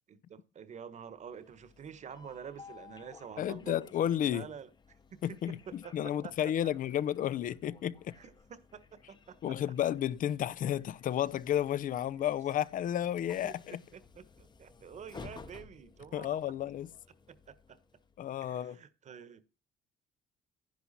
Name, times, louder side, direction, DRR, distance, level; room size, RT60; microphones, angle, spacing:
voice 1, 0.1-4.7 5.1-6.7 8.2-9.6 13.4-16.4 17.3-17.8 18.4-19.4, right 7 dB, 45° right, 1.3 m, -48 dB
Train, 1.1-18.4, left 5 dB, 25° left, 0.9 m, -56 dB
voice 2, 3.4-4.5 5.2-8.1 9.4-13.8 16.1-16.9 18.2-18.8, left 11 dB, 55° left, 0.6 m, -32 dB
11.5 x 10.5 x 4.2 m
cardioid pair, 110°, 17 cm